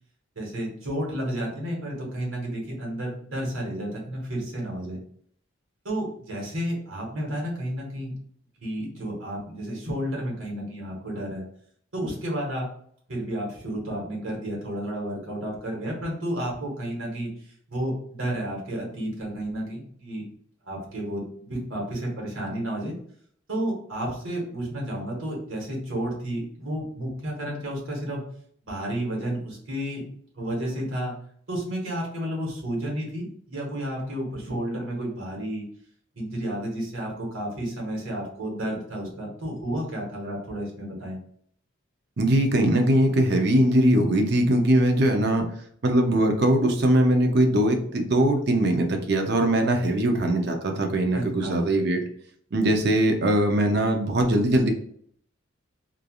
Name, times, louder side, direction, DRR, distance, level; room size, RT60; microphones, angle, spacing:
voice 1, 0.3-5.0 5.8-8.1 8.6-11.4 11.9-12.7 13.1-17.3 17.7-20.2 20.6-22.9 23.5-28.2 28.6-30.0 30.3-31.2 31.5-35.6 36.1-41.2 51.1-51.7, right 1 dB, 85° right, -2 dB, 1.3 m, -31 dB
voice 2, 42.2-45.5 45.8-52.0 52.5-54.7, right 1 dB, 55° right, 4 dB, 0.5 m, -21 dB
3.2 x 2.4 x 2.3 m, 0.62 s
head